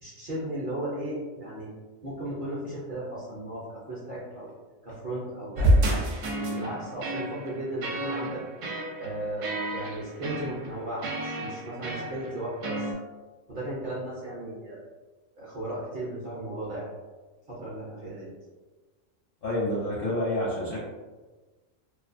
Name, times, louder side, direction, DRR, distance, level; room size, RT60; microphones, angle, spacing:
voice 1, 0.0-1.7 2.0-4.5 4.8-8.4 9.0-9.4 9.7-12.9 13.5-14.8 15.4-16.9 17.5-18.3, right 1 dB, 50° right, -8 dB, 0.6 m, -35 dB
sound 1, 5.6-12.9, right 1 dB, 70° right, 0.9 m, -29 dB
voice 2, 19.4-20.8, left 1 dB, 60° left, -7 dB, 0.6 m, -28 dB
2.4 x 2.2 x 2.5 m, 1.3 s
omnidirectional pair, 1.4 m